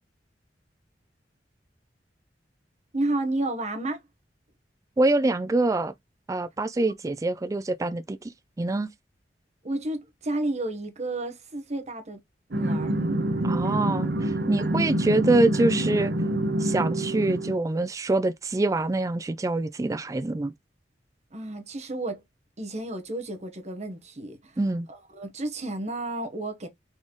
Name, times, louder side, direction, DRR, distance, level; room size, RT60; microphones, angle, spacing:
voice 1, 2.9-4.0 6.8-6.9 9.6-12.2 12.5-12.9 21.3-22.2 22.6-24.6 24.9-26.7, right 2 dB, 40° right, 1.0 m, -31 dB
voice 2, 5.0-5.9 6.3-8.3 8.6-8.9 13.4-16.1 16.6-20.5 24.6-24.9, right 2 dB, 20° right, 0.3 m, -25 dB
sound 1, 12.5-17.6, right 1 dB, 65° right, 0.8 m, -26 dB
4.1 x 3.8 x 3.0 m
head